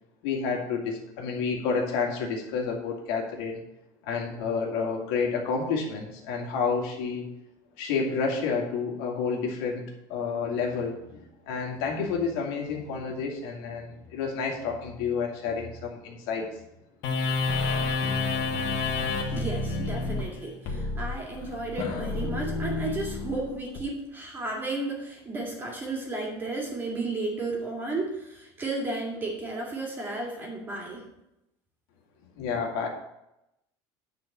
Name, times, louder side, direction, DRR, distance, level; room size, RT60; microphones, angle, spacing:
voice 1, 0.2-3.6 4.0-7.3 7.8-9.8 10.1-16.5 32.4-32.9, left 5 dB, 70° left, 0 dB, 2.2 m, -30 dB
sound 1, 17.0-23.8, left 3 dB, 50° left, 1.8 m, -29 dB
voice 2, 19.3-31.0, right 2 dB, 20° right, -1 dB, 2.3 m, -33 dB
9.6 x 4.3 x 7.3 m, 0.86 s
cardioid pair, 160°, 10 cm